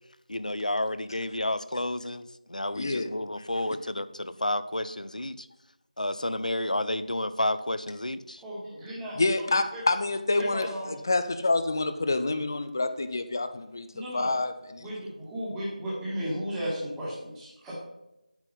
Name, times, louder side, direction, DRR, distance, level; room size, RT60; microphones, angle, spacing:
voice 1, 0.3-5.5 6.0-8.4, left 1 dB, 70° left, 14 dB, 0.8 m, -31 dB
voice 2, 2.7-3.1 3.4-3.5 9.2-14.9, left 2 dB, 25° left, 10 dB, 0.7 m, -28 dB
voice 3, 8.4-9.5 9.7-9.8 10.3-10.9 13.9-14.3 14.8-17.8, equal, 5° right, -7 dB, 1.8 m, -35 dB
9.8 x 9.0 x 5.5 m, 0.90 s
figure-of-eight pair, 170°, 4 cm